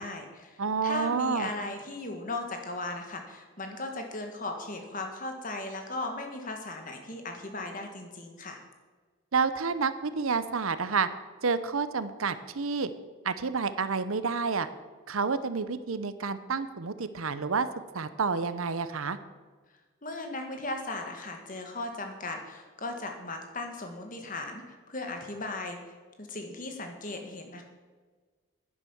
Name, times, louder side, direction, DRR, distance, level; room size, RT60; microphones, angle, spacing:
voice 1, 0.0-8.6 20.0-27.6, left 2 dB, 40° left, 4 dB, 1.8 m, -37 dB
voice 2, 0.6-1.5 9.3-11.1 11.4-12.9 13.2-14.7 15.1-17.7 17.9-19.2, right 5 dB, 75° right, 13 dB, 0.8 m, -29 dB
10.5 x 9.9 x 7.2 m, 1.4 s
head